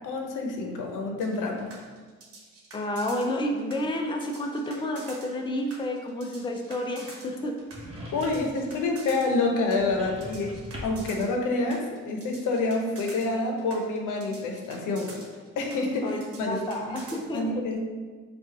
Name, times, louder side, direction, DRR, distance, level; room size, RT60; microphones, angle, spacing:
voice 1, 0.0-1.7 8.1-15.2 15.6-16.6 16.9-17.0 17.3-17.8, left 3 dB, 85° left, 2 dB, 0.7 m, -28 dB
sound 1, 1.2-17.2, right 3 dB, 50° right, 1.1 m, -47 dB
voice 2, 2.7-7.5 16.0-17.5, left 1 dB, 15° left, 2 dB, 0.5 m, -30 dB
sound 2, 7.7-8.6 9.7-11.1, equal, 20° right, 1.3 m, -40 dB
4.9 x 2.4 x 4.0 m, 1.5 s
cardioid pair, 90°, 30 cm